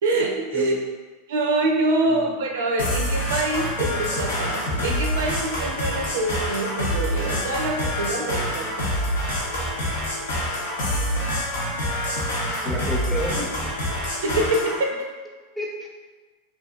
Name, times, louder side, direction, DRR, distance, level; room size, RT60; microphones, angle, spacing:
voice 1, 0.0-0.7 1.3-8.7 14.1-15.1, right 2 dB, 75° right, 1 dB, 0.4 m, -25 dB
sound 1, 2.8-14.8, equal, 80° left, 0.7 m, -26 dB
voice 2, 12.6-13.6 15.6-15.9, equal, ahead, -2 dB, 0.5 m, -30 dB
2.6 x 2.4 x 2.3 m, 1.3 s
hypercardioid pair, 100°, 0 cm